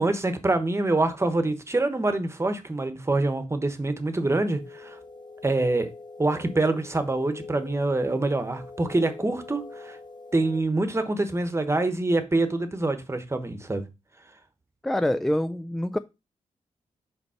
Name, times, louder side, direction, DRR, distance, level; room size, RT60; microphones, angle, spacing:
voice 1, 0.0-5.0 5.4-5.9 6.2-10.0 10.3-13.8, right 2 dB, 20° right, 1.1 m, -25 dB
sound 1, 4.4-10.6, left 3 dB, 35° left, 2.1 m, -43 dB
voice 2, 14.8-16.0, left 1 dB, ahead, 0.3 m, -25 dB
5.2 x 4.5 x 5.7 m
wide cardioid pair, 90°, 13 cm